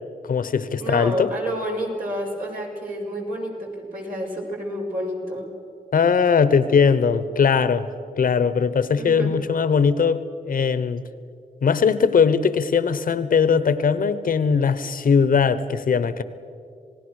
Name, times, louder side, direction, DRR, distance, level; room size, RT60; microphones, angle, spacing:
voice 1, 0.3-1.3 5.9-7.9 8.2-11.0 11.6-16.2, left 6 dB, 70° left, 14 dB, 1.1 m, -20 dB
voice 2, 0.8-5.5 9.0-9.4, equal, 70° right, -2 dB, 5.8 m, -29 dB
27.0 x 18.5 x 6.5 m, 2.4 s
cardioid pair, 60°, 15 cm